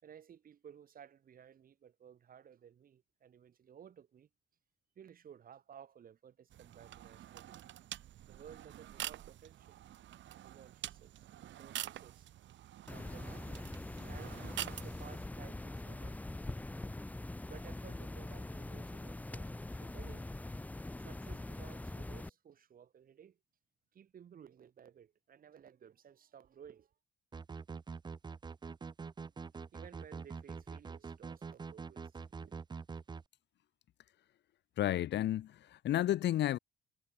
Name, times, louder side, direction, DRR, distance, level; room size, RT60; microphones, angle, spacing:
voice 1, 0.0-4.3 5.0-7.8 8.3-9.8 10.4-12.3 12.9-13.6 14.1-16.2 17.5-20.3 21.0-23.4 23.9-26.9 29.5-32.6, right 8 dB, 45° right, 5.5 m, -57 dB
sound 1, 6.5-15.3, right 12 dB, 65° right, 1.7 m, -47 dB
sound 2, 12.9-22.3, left 2 dB, 5° left, 1.0 m, -43 dB
sound 3, 27.3-33.2, right 5 dB, 20° right, 0.9 m, -45 dB
voice 2, 34.8-36.6, left 12 dB, 60° left, 0.8 m, -32 dB
cardioid pair, 170°, 20 cm